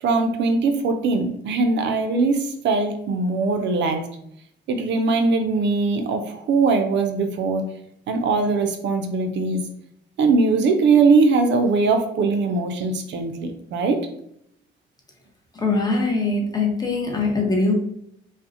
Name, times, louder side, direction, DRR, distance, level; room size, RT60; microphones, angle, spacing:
voice 1, 0.0-4.0 4.7-7.6 8.1-9.6 10.2-14.0, right 4 dB, 65° right, 6 dB, 0.4 m, -21 dB
voice 2, 15.5-17.7, left 3 dB, 20° left, 0 dB, 0.6 m, -22 dB
2.4 x 2.0 x 2.6 m, 0.74 s
cardioid pair, 90°, 20 cm